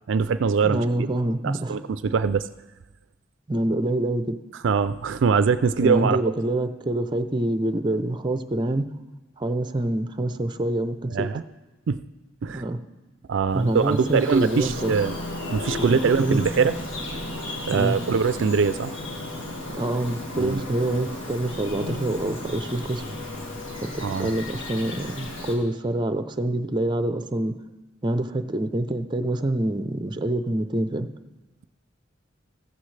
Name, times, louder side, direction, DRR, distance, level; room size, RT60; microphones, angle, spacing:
voice 1, 0.1-0.8 1.4-2.5 4.6-6.2 11.1-11.4 11.9-12.0 12.4-12.6 13.3-15.2 15.5-16.7 17.7-18.9 20.4-20.6 24.0-24.3, right 5 dB, 70° right, 13 dB, 0.4 m, -22 dB
voice 2, 0.6-1.8 3.5-4.4 5.8-8.9 9.4-11.3 12.5-12.8 13.5-14.9 15.8-16.7 17.7-18.0 19.7-23.0 23.8-27.5 28.0-31.1, right 1 dB, 25° right, 9 dB, 0.6 m, -26 dB
Bird vocalization bird call bird song, 13.5-25.5, left 1 dB, 70° left, 2.2 m, -34 dB
15.0 x 14.5 x 3.3 m, 1.2 s
head